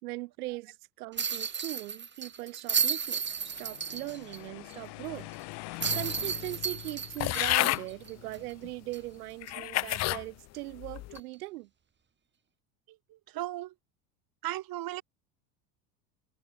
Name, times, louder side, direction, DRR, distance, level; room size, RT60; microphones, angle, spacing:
voice 1, 0.0-5.3 5.7-11.7, right 20 dB, 85° right, 4.7 m, -40 dB
sound 1, 1.2-4.4 4.7-4.8 5.8-8.5 8.9-9.0 11.1-11.3, right 6 dB, 25° right, 3.1 m, -33 dB
sound 2, 3.0-9.2, left 25 dB, 65° left, 3.1 m, -45 dB
sound 3, 7.2-7.8 8.6-8.7 9.4-10.2 10.8-11.2, left 17 dB, 40° left, 0.5 m, -29 dB
voice 2, 13.3-13.7 14.4-15.0, right 15 dB, 50° right, 6.5 m, -35 dB
supercardioid pair, 110°, 44 cm